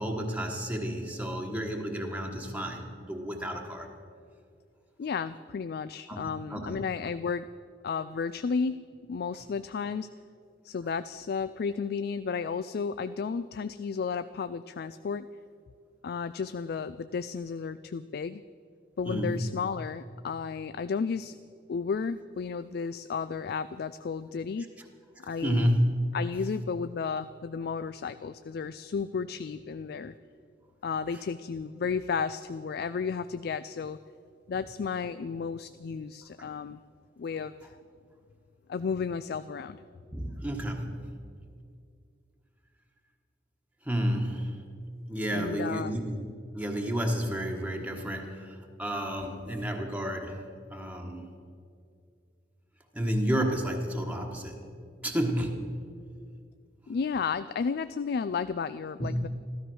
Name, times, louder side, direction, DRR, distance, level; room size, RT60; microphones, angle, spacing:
voice 1, 0.0-3.9 6.1-6.8 19.0-19.5 25.2-25.9 40.1-41.1 43.8-44.6 45.1-50.4 50.7-51.3 52.9-54.6 55.0-55.6 59.0-59.3, equal, 10° right, 1 dB, 1.3 m, -31 dB
voice 2, 5.0-7.5 7.8-8.8 9.1-10.1 10.6-15.3 16.0-18.4 19.0-21.3 21.7-24.7 25.2-25.7 26.1-30.1 30.8-34.0 34.5-36.8 37.2-37.7 38.7-39.8 45.3-46.0 56.9-59.3, left 5 dB, 60° left, 13 dB, 0.4 m, -33 dB
14.5 x 13.0 x 6.2 m, 2.3 s
head